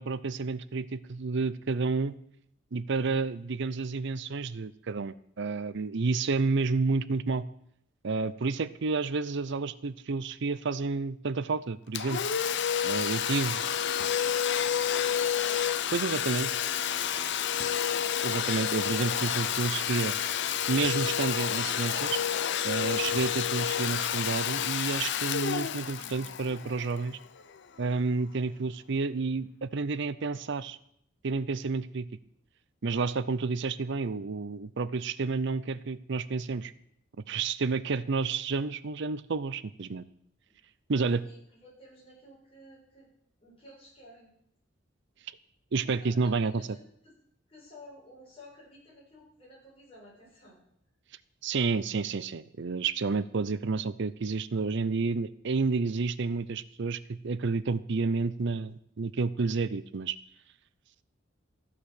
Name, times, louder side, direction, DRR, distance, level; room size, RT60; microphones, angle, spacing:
voice 1, 0.0-2.2 2.7-7.4 8.0-12.2 12.8-13.6 15.9-16.5 18.2-20.1 20.7-22.2 22.6-27.2 27.8-30.8 31.2-32.1 32.8-36.7 37.3-40.0 40.9-41.2 45.7-46.5 51.4-57.0 57.2-60.2, right 4 dB, 65° right, 16 dB, 0.6 m, -30 dB
Domestic sounds home sounds, 11.9-27.4, left 9 dB, 65° left, 0.6 m, -29 dB
voice 2, 16.3-16.9 40.9-43.1 43.4-44.3 45.8-47.1 47.5-50.6, left 1 dB, 30° left, -5 dB, 7.7 m, -53 dB
14.5 x 8.6 x 6.6 m, 0.70 s
head